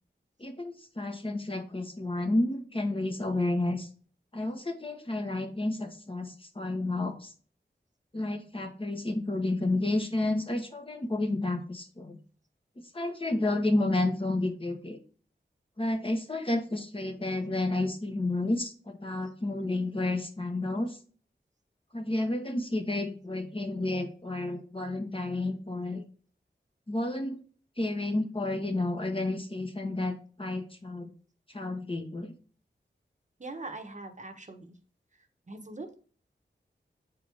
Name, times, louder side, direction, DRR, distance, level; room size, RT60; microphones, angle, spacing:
voice 1, 0.4-3.9 4.3-7.3 8.1-12.2 12.9-15.0 15.8-21.0 21.9-26.0 26.9-27.4 27.8-31.1 31.5-32.3, left 2 dB, 30° left, 4 dB, 1.1 m, -31 dB
voice 2, 33.4-34.8 35.5-36.0, right 2 dB, 40° right, 5 dB, 1.1 m, -42 dB
7.5 x 4.7 x 3.4 m, 0.42 s
wide cardioid pair, 80°, 19 cm